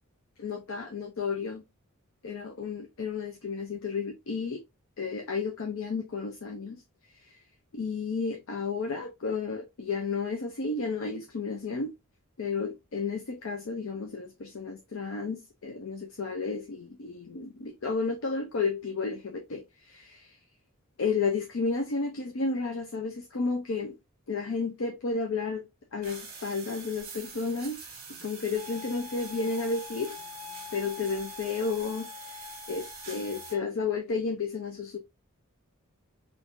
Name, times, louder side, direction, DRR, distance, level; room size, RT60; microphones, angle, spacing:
voice 1, 0.4-1.6 2.2-4.6 5.0-6.8 7.1-7.4 7.7-11.9 12.4-20.4 21.0-23.9 24.3-25.7 25.9-27.8 28.1-30.2 30.7-35.0, left 4 dB, 65° left, 0.5 m, -32 dB
sound 1, 26.0-33.5, right 5 dB, 45° right, 1.2 m, -45 dB
sound 2, 28.6-33.6, left 12 dB, 15° left, 1.5 m, -46 dB
3.5 x 2.5 x 2.5 m
head